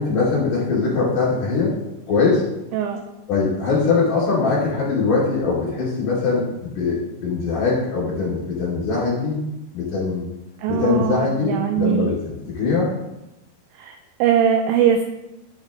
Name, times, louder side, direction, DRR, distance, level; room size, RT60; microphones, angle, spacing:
voice 1, 0.0-1.7 2.1-2.4 3.3-9.4 9.7-10.3 10.7-12.2 12.5-12.9, left 4 dB, 45° left, -7 dB, 3.7 m, -21 dB
voice 2, 2.7-3.0 10.6-12.1 13.8-15.0, right 8 dB, 85° right, 5 dB, 2.7 m, -21 dB
11.5 x 5.1 x 3.8 m, 0.93 s
omnidirectional pair, 5.9 m